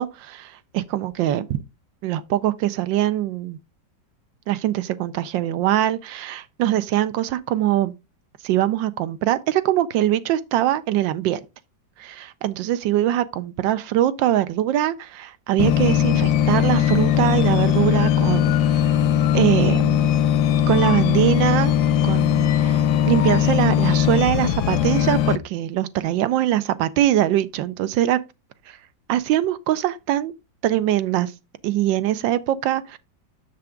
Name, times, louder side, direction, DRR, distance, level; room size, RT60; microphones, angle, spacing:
voice 1, 0.0-1.6 2.0-3.6 4.5-7.9 8.4-11.4 12.0-19.0 19.3-20.1 20.7-21.7 22.0-28.2 28.7-28.8 29.1-30.3 30.6-31.3 31.6-33.0, right 13 dB, 80° right, 1.3 m, -22 dB
sound 1, 15.6-25.4, left 10 dB, 70° left, 1.0 m, -19 dB
7.0 x 6.8 x 3.7 m
omnidirectional pair, 2.0 m